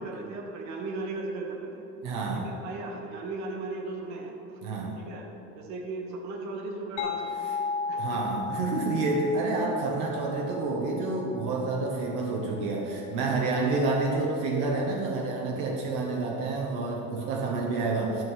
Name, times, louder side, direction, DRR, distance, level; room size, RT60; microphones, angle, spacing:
voice 1, 0.0-1.8 2.4-4.6 5.0-5.3 5.6-7.6 7.9-8.2 13.3-13.5 17.2-17.5, right 3 dB, 65° right, 2 dB, 1.4 m, -37 dB
voice 2, 2.0-2.5 4.6-5.0 8.0-18.2, right 3 dB, 85° right, 0 dB, 1.2 m, -29 dB
sound 1, 7.0-12.4, left 4 dB, 65° left, 1.0 m, -35 dB
12.5 x 5.7 x 5.0 m, 2.9 s
cardioid pair, 155°, 30 cm